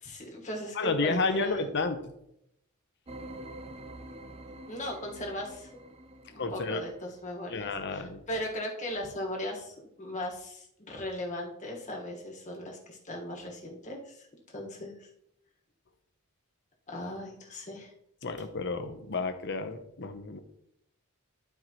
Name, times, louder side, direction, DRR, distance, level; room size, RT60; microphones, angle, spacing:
voice 1, 0.0-1.6 4.7-5.7 6.3-15.1 16.9-17.9, left 1 dB, 35° left, 0 dB, 1.5 m, -38 dB
voice 2, 0.7-2.0 6.4-6.8 7.5-8.2 18.2-20.4, left 3 dB, 50° left, 8 dB, 0.8 m, -31 dB
sound 1, 3.1-7.4, right 1 dB, 25° right, 0.5 m, -47 dB
12.0 x 4.7 x 3.0 m, 0.78 s
head